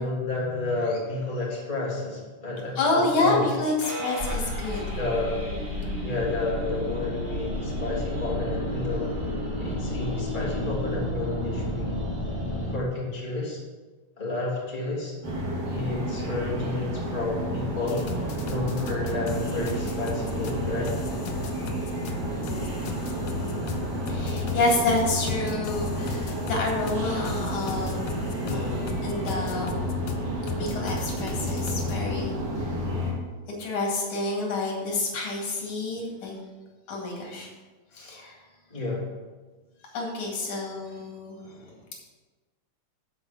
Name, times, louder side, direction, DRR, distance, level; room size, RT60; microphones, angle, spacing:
voice 1, 0.0-3.5 4.9-5.5 5.8-9.1 9.6-12.0 12.7-13.6 14.2-15.1 15.7-18.1 18.5-20.9 28.4-28.8 38.7-39.1, left 2 dB, 15° left, -5 dB, 2.5 m, -31 dB
voice 2, 2.8-4.8 24.1-28.2 28.5-29.7 30.5-32.3 33.5-36.3 36.9-37.5 37.9-38.4 39.9-41.7, left 2 dB, 85° left, -1 dB, 3.5 m, -28 dB
sound 1, 3.8-12.8, left 1 dB, 25° right, 1.7 m, -31 dB
sound 2, 15.2-33.1, equal, 85° right, 4.3 m, -31 dB
sound 3, 17.9-32.0, left 4 dB, 70° left, 1.3 m, -37 dB
12.0 x 4.7 x 5.9 m, 1.3 s
omnidirectional pair, 3.3 m